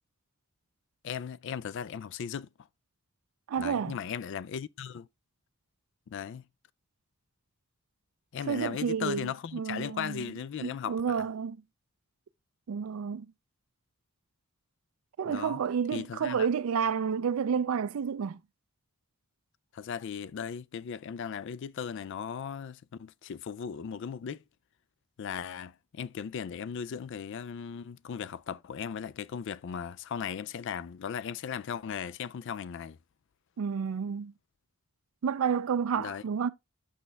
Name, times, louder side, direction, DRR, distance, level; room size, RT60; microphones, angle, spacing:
voice 1, 1.0-2.5 3.6-5.1 6.1-6.4 8.3-11.2 15.3-15.6 15.9-16.5 19.7-24.4 25.2-33.0 36.0-36.2, left 7 dB, 55° left, 0.3 m, -37 dB
voice 2, 3.5-4.0 8.5-10.3 10.6-11.6 12.7-13.3 15.2-18.4 33.6-34.3 35.2-36.5, right 6 dB, 70° right, 0.4 m, -30 dB
6.2 x 5.6 x 3.3 m
head